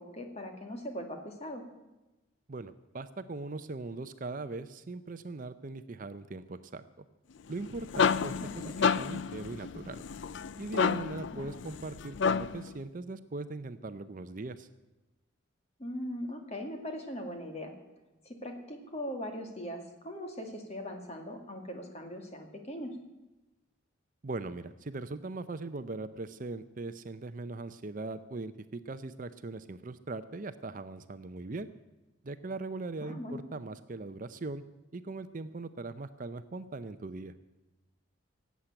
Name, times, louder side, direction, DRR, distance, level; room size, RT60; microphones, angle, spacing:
voice 1, 0.0-1.6 8.4-8.7 11.3-11.5 15.8-17.8 18.2-23.0 33.0-33.4, equal, 30° left, 4 dB, 2.2 m, -40 dB
voice 2, 2.5-6.8 7.5-10.0 10.6-14.7 24.2-31.7 32.2-34.6 34.9-37.3, right 3 dB, 40° right, 11 dB, 0.6 m, -40 dB
sound 1, 7.5-12.7, left 6 dB, 60° left, 0.4 m, -30 dB
17.5 x 8.3 x 8.8 m, 1.0 s
head